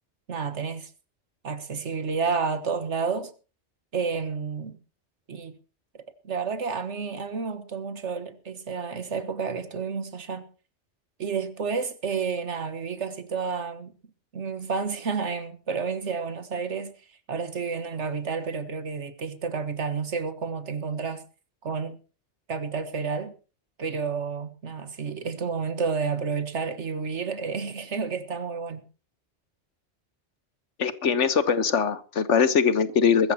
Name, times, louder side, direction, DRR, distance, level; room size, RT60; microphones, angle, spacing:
voice 1, 0.3-0.9 1.4-3.3 3.9-4.8 5.3-5.5 6.2-10.5 11.2-13.9 14.3-16.9 17.3-21.2 21.6-22.0 22.5-23.3 23.8-28.8, right 5 dB, 75° right, 1.7 m, -30 dB
voice 2, 30.8-33.3, left 6 dB, 85° left, 1.5 m, -22 dB
22.0 x 14.0 x 2.9 m
omnidirectional pair, 1.2 m